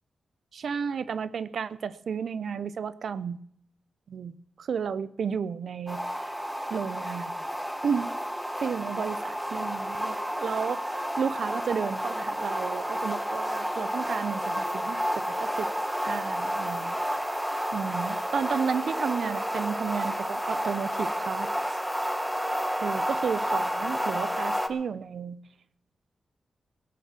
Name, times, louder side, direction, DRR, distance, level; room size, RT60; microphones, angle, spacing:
voice 1, 0.5-3.4 4.1-6.3 6.7-7.3 7.8-8.1 8.6-15.7 16.0-17.0 17.7-21.5 22.8-25.4, right 6 dB, 75° right, 16 dB, 0.6 m, -32 dB
sound 1, 5.9-24.7, equal, 5° right, 1.1 m, -31 dB
20.0 x 6.8 x 7.4 m, 0.71 s
cardioid pair, 90°, 0 cm